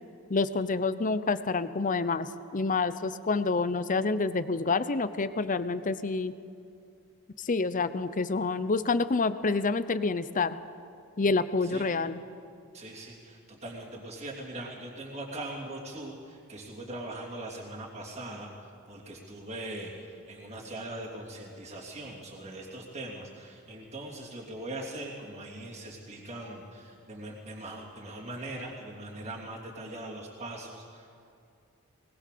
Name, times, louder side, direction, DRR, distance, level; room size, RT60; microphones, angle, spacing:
voice 1, 0.3-2.3 2.5-6.3 7.4-10.6 11.2-12.2, left 3 dB, 35° left, 14 dB, 0.7 m, -28 dB
voice 2, 11.6-11.9 12.7-31.1, right 1 dB, 30° right, -4 dB, 3.0 m, -41 dB
20.5 x 20.0 x 6.8 m, 2.5 s
head